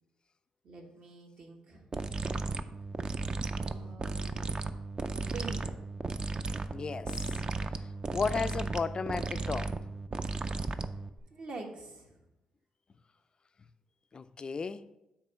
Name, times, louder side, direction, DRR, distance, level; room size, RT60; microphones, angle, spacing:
voice 1, 0.6-1.9 3.5-4.8 5.1-5.8 11.3-12.2, right 3 dB, 65° right, 1.4 m, -46 dB
sound 1, 1.9-11.2, right 3 dB, 35° right, 0.4 m, -35 dB
voice 2, 6.7-7.1 8.1-9.7 14.1-14.8, left 5 dB, 40° left, 0.3 m, -33 dB
8.4 x 3.0 x 5.6 m
cardioid pair, 80°, 2 cm